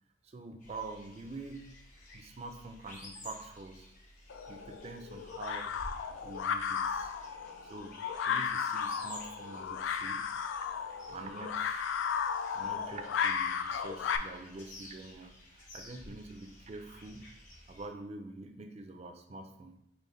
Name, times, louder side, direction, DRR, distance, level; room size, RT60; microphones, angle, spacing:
voice 1, 0.2-1.7 2.1-3.9 4.5-5.8 6.2-7.1 7.6-10.3 11.1-12.0 12.5-17.3 17.7-19.8, right 2 dB, 35° right, 6 dB, 0.4 m, -46 dB
sound 1, 0.6-17.9, left 1 dB, 40° left, 1.1 m, -53 dB
sound 2, 4.3-14.2, left 7 dB, 85° left, 0.3 m, -35 dB
4.6 x 2.9 x 3.1 m, 0.78 s
head